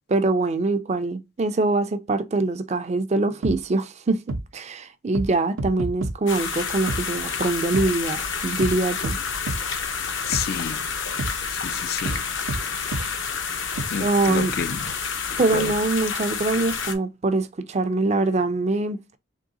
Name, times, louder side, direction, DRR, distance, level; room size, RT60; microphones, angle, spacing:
voice 1, 0.1-4.2 4.5-9.2 14.0-14.5 15.4-19.2, right 2 dB, 35° right, 0.4 m, -23 dB
sound 1, 3.4-3.6 4.3-4.4 5.1-5.3 5.6-6.1 6.9-7.0 7.7-7.9 8.6-8.7 9.0-9.2 9.5-9.6 10.3-10.5 11.2-11.3 12.1-12.2 12.5-12.6 12.9-13.1 13.8-13.9, right 2 dB, 80° right, 0.6 m, -27 dB
sound 2, 6.3-16.9, left 6 dB, 65° left, 0.8 m, -29 dB
voice 2, 10.3-10.9 11.5-12.2 13.9-14.9 15.3-15.7, left 7 dB, 50° left, 0.3 m, -30 dB
3.7 x 3.3 x 3.9 m
head